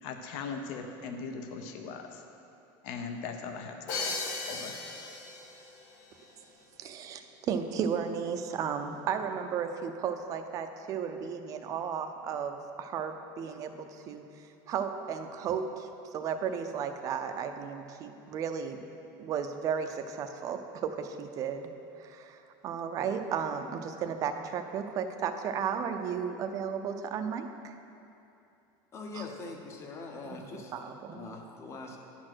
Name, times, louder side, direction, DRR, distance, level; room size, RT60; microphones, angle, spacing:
voice 1, 0.0-2.2 2.8-4.2 4.5-4.8, left 5 dB, 60° left, 5 dB, 0.7 m, -39 dB
Crash cymbal, 3.9-5.7, left 3 dB, 75° left, 1.2 m, -36 dB
voice 2, 6.8-14.2 14.7-18.8 19.2-21.7 22.0-27.7 29.1-29.2 30.3-30.5 30.7-31.3, right 7 dB, 35° right, 7 dB, 0.5 m, -34 dB
voice 3, 28.9-30.7 31.1-32.0, left 3 dB, 25° left, 2 dB, 0.8 m, -42 dB
10.5 x 4.3 x 6.1 m, 2.7 s
cardioid pair, 165°, 10 cm